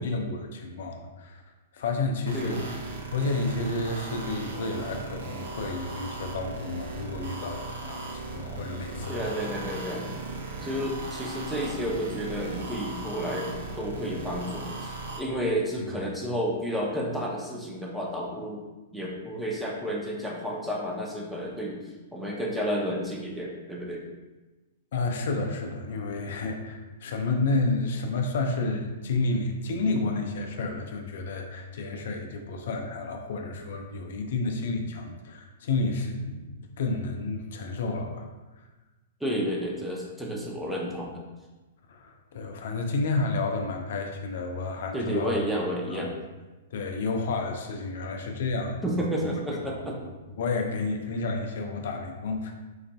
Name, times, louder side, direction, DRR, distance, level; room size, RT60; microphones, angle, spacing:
voice 1, 0.0-1.4 1.7-2.8 3.1-9.3 15.8-15.9 24.9-38.3 41.9-45.4 45.8-46.1 46.7-48.9 49.7-49.8 50.0-50.1 50.4-52.5, left 3 dB, 70° left, 3 dB, 0.4 m, -30 dB
sound 1, 2.2-15.2, right 2 dB, 70° right, 0.6 m, -37 dB
voice 2, 9.1-10.1 10.6-18.6 18.9-21.8 22.1-24.0 39.2-41.2 44.9-46.1 48.8-49.9, equal, 5° right, -3 dB, 0.6 m, -31 dB
3.9 x 2.5 x 2.3 m, 1.2 s
hypercardioid pair, 120°, 0 cm